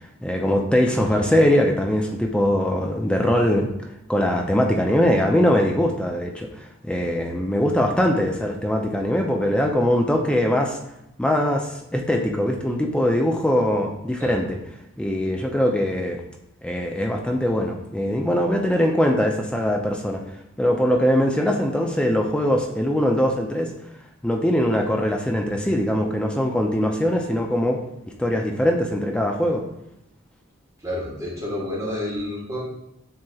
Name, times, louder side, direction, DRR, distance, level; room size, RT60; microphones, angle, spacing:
voice 1, 0.2-3.7 4.1-10.8 11.2-14.6 15.0-16.2 16.6-20.2 20.6-23.7 24.2-27.8 28.2-29.6, equal, 5° left, 2 dB, 0.3 m, -21 dB
voice 2, 30.8-32.6, left 1 dB, 15° right, -6 dB, 1.3 m, -30 dB
7.5 x 2.8 x 2.3 m, 0.83 s
head